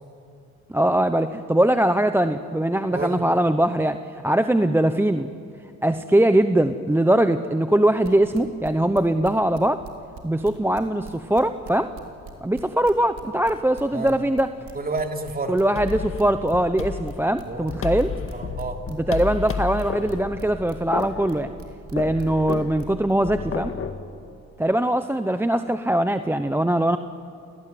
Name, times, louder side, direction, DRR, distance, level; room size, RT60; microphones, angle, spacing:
voice 1, 0.7-5.3 5.8-9.8 10.2-11.9 12.4-14.5 15.5-18.1 18.9-21.5 21.9-23.7 24.6-27.0, right 1 dB, 10° right, 9 dB, 0.8 m, -21 dB
voice 2, 2.9-3.2 13.9-14.1 14.7-15.5 17.5-17.7 18.3-18.8, right 3 dB, 30° right, 4 dB, 3.0 m, -30 dB
sound 1, 8.0-10.2 10.4-23.1, right 7 dB, 70° right, 3.9 m, -42 dB
sound 2, 15.8-24.0, left 6 dB, 45° left, 1.9 m, -32 dB
30.0 x 18.5 x 9.5 m, 2.4 s
cardioid pair, 90°, 30 cm